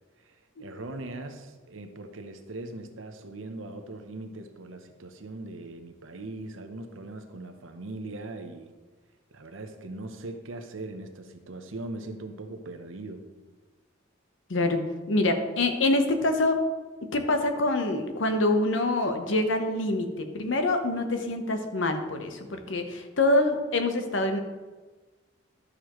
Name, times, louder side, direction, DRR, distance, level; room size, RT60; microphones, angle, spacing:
voice 1, 0.2-8.7 9.3-13.3, right 2 dB, 80° right, 7 dB, 0.8 m, -40 dB
voice 2, 14.5-14.8 15.1-16.6 17.0-24.4, left 2 dB, 70° left, 6 dB, 0.9 m, -25 dB
11.0 x 6.7 x 3.1 m, 1.3 s
head